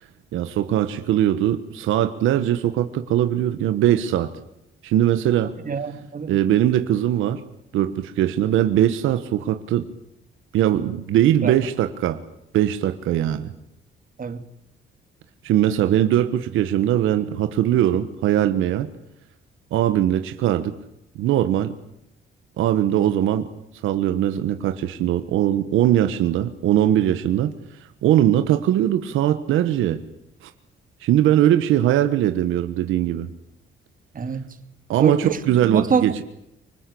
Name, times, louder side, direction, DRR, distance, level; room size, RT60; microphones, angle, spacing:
voice 1, 0.3-4.3 4.8-5.5 6.3-7.4 7.7-9.9 10.5-12.2 12.5-13.5 15.4-18.9 19.7-20.7 21.1-21.8 22.6-23.5 23.8-30.0 30.4-30.5 31.0-33.3 34.9-36.2, right 12 dB, 90° right, 1.4 m, -20 dB
voice 2, 5.6-6.3 11.4-11.5 14.2-14.4 34.1-34.5 35.0-35.4 35.7-36.2, right 5 dB, 45° right, 2.7 m, -25 dB
25.5 x 20.5 x 8.5 m
cardioid pair, 90°, 20 cm